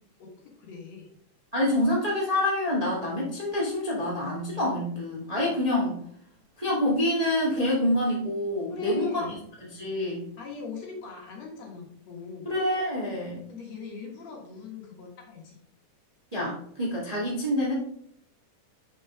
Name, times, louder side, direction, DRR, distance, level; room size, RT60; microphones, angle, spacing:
voice 1, 0.6-1.1 8.7-9.4 10.4-12.5 13.5-15.6, left 5 dB, 60° left, 0 dB, 2.6 m, -39 dB
voice 2, 1.5-6.0 6.6-9.2 9.6-10.3 12.4-13.4 16.3-17.7, left 1 dB, 15° right, -4 dB, 1.5 m, -27 dB
6.2 x 5.5 x 4.8 m, 0.68 s
omnidirectional pair, 3.6 m